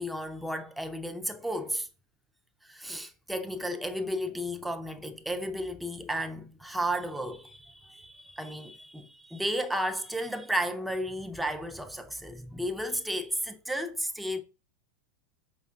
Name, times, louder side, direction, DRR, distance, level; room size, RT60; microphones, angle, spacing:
voice 1, 0.0-1.9 2.6-14.4, equal, 5° right, 0.5 m, -33 dB
4.9 x 2.3 x 2.5 m
hypercardioid pair, 95°, 0 cm